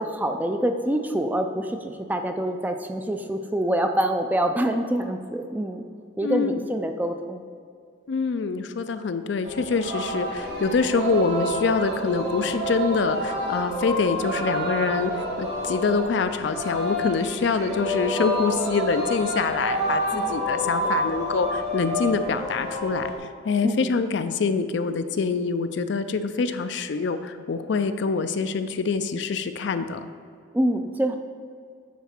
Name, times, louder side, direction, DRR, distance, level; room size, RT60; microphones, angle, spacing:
voice 1, 0.0-5.8 6.2-7.4 20.1-20.5 20.8-20.9 23.6-23.9 30.5-31.2, right 1 dB, 10° right, 6 dB, 0.3 m, -26 dB
voice 2, 6.2-6.6 8.1-23.1 23.4-30.0, left 4 dB, 65° left, 10 dB, 0.4 m, -25 dB
Singing, 9.4-23.2, equal, 55° right, 1.7 m, -28 dB
9.3 x 4.0 x 4.3 m, 2.3 s
head